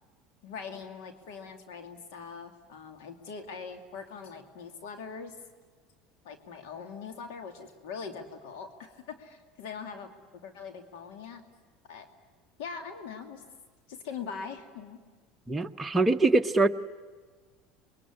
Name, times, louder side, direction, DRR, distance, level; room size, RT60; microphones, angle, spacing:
voice 1, 0.4-5.3 6.2-10.1 10.4-11.4 11.9-12.1 12.6-13.4 13.9-15.0, left 5 dB, 80° left, 6 dB, 2.5 m, -42 dB
voice 2, 15.5-16.7, right 3 dB, 10° right, 4 dB, 1.0 m, -23 dB
27.0 x 22.0 x 9.7 m, 1.5 s
supercardioid pair, 110°, 0 cm